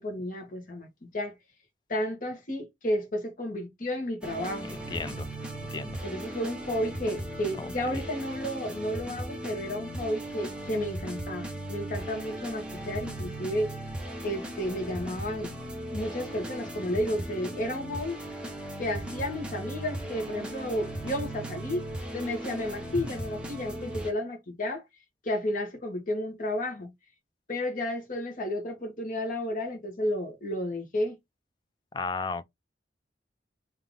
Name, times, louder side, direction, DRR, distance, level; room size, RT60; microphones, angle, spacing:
voice 1, 0.0-1.3 1.9-4.8 6.0-13.8 14.2-15.5 15.9-18.2 18.8-21.8 22.1-24.8 25.2-26.9 27.5-31.2, left 1 dB, 45° left, 1.2 m, -32 dB
sound 1, 4.2-24.1, right 1 dB, 5° right, 1.0 m, -37 dB
voice 2, 4.7-5.3 5.7-6.0 7.6-8.0 22.9-23.0 31.9-32.4, left 4 dB, 25° left, 0.3 m, -35 dB
3.7 x 2.8 x 3.5 m
head